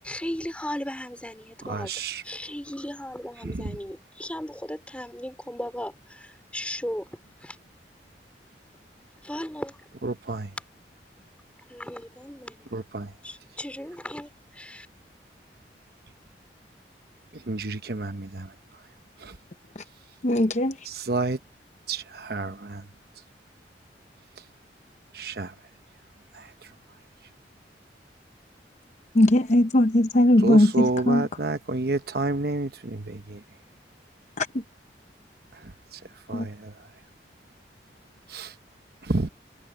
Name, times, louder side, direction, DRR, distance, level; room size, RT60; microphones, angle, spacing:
voice 1, 0.0-1.9 2.2-7.0 7.4-7.5 9.2-9.9 11.7-12.7 13.2-14.9, left 1 dB, 5° left, 4.4 m, -36 dB
voice 2, 1.6-2.2 3.4-3.8 10.0-10.5 12.7-13.1 17.3-18.8 19.2-19.4 20.8-21.4 21.9-22.9 24.4-24.5 25.1-25.5 26.3-26.7 30.4-33.4 35.5-36.9 38.3-38.6 39.0-39.3, right 3 dB, 60° right, 1.0 m, -30 dB
voice 3, 20.2-20.8 29.1-31.2 34.4-34.6 36.3-36.5, left 1 dB, 40° left, 0.8 m, -19 dB
head